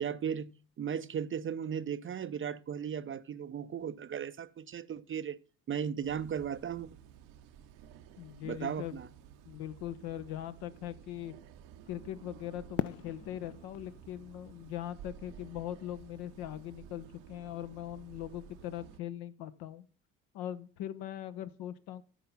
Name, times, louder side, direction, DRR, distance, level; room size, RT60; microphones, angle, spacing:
voice 1, 0.0-5.4 5.7-6.9 8.4-9.1, right 8 dB, 30° right, 0.5 m, -36 dB
sound 1, 6.0-19.0, right 9 dB, 75° right, 0.9 m, -54 dB
voice 2, 8.2-9.0 9.5-11.3 11.9-19.9 20.3-22.0, left 12 dB, 60° left, 0.9 m, -41 dB
Fireworks, 12.8-15.8, left 11 dB, 40° left, 0.5 m, -41 dB
12.0 x 4.5 x 5.4 m
hypercardioid pair, 55°, 42 cm